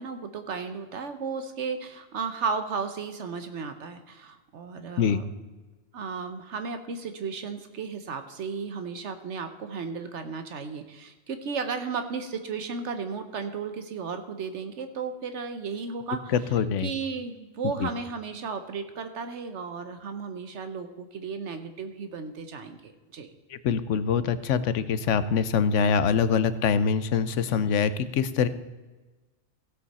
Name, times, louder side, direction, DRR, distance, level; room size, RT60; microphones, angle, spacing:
voice 1, 0.0-5.3 5.9-16.3 16.8-23.3, right 5 dB, 75° right, 8 dB, 1.2 m, -34 dB
voice 2, 16.3-16.9 17.8-17.9 23.5-28.5, left 6 dB, 85° left, 14 dB, 1.1 m, -24 dB
16.0 x 8.2 x 4.1 m, 1.3 s
omnidirectional pair, 1.2 m